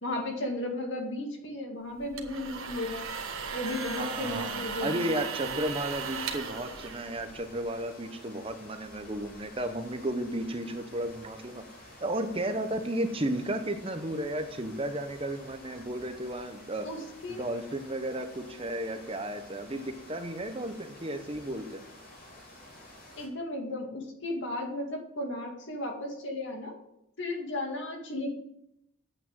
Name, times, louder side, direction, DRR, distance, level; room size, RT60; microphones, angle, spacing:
voice 1, 0.0-3.1 3.5-5.1 16.8-17.0 17.2-17.4 23.2-26.7 27.2-28.4, left 1 dB, 60° left, 2 dB, 2.2 m, -34 dB
sound 1, 1.9-7.7, right 5 dB, 80° right, 1.4 m, -37 dB
voice 2, 4.0-11.6 12.0-16.9 17.3-21.9, right 1 dB, 25° right, 7 dB, 0.9 m, -33 dB
sound 2, 5.9-23.3, left 1 dB, 40° left, 4.0 m, -51 dB
8.7 x 8.6 x 7.4 m, 0.81 s
head